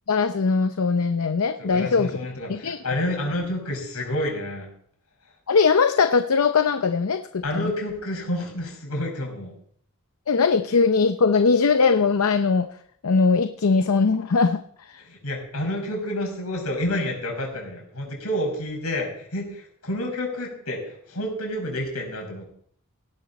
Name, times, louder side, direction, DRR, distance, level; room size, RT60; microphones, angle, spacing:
voice 1, 0.1-2.2 2.5-2.8 5.5-7.7 10.3-12.7 13.0-14.6, left 4 dB, 70° left, 9 dB, 0.6 m, -20 dB
voice 2, 1.6-4.7 7.4-9.5 15.0-22.4, left 1 dB, 90° left, 1 dB, 5.7 m, -29 dB
17.5 x 12.0 x 4.2 m, 0.62 s
head